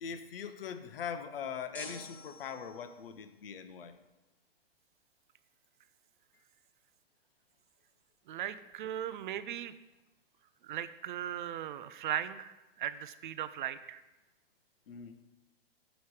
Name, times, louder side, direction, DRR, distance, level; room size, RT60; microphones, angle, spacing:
voice 1, 0.0-4.0 14.9-15.2, left 7 dB, 65° left, 9 dB, 0.8 m, -41 dB
sound 1, 1.7-3.1, left 1 dB, 5° left, 1.0 m, -48 dB
voice 2, 8.3-9.7 10.6-14.0, right 11 dB, 55° right, 13 dB, 0.5 m, -38 dB
9.3 x 3.1 x 4.8 m, 1.1 s
hypercardioid pair, 125°, 31 cm